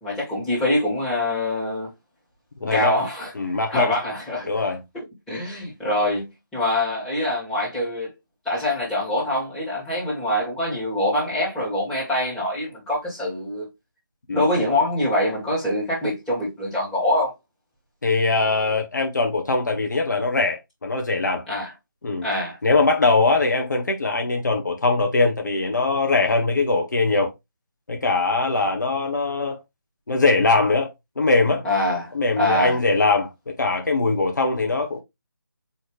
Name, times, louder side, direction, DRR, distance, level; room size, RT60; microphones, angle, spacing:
voice 1, 0.0-1.9 2.6-4.5 4.9-6.3 6.5-8.1 8.4-13.7 14.3-17.3 21.5-21.7 22.2-22.6 31.6-32.8, left 1 dB, 5° left, 1.9 m, -24 dB
voice 2, 2.6-2.9 3.3-3.9 4.5-4.8 14.3-14.5 18.0-21.4 22.0-22.2 22.6-27.3 27.9-29.6 30.1-30.9 31.2-31.6 32.1-33.3 33.6-35.0, left 3 dB, 60° left, 1.1 m, -21 dB
4.6 x 3.2 x 3.2 m
figure-of-eight pair, 155°, 11 cm